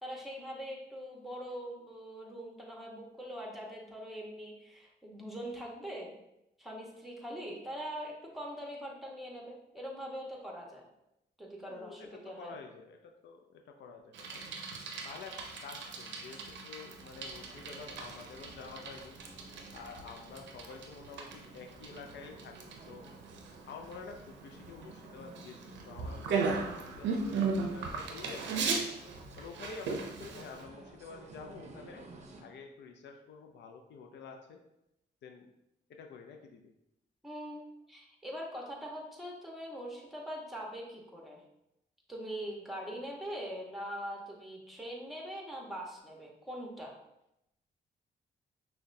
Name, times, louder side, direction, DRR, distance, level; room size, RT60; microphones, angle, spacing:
voice 1, 0.0-6.1 6.6-10.8 11.4-12.5 37.2-37.6 37.9-41.4 42.1-47.0, equal, ahead, -2 dB, 1.1 m, -42 dB
voice 2, 11.7-14.6 15.0-19.2 19.7-23.1 23.7-28.5 29.4-32.1 32.4-34.6 35.2-35.5 35.9-36.7, left 5 dB, 80° left, 3 dB, 0.4 m, -49 dB
Bicycle, 14.1-30.6, right 4 dB, 90° right, 0.5 m, -38 dB
sound 1, 17.1-32.4, right 3 dB, 40° right, 0.7 m, -54 dB
5.8 x 2.2 x 2.6 m, 0.85 s
cardioid pair, 65°, 18 cm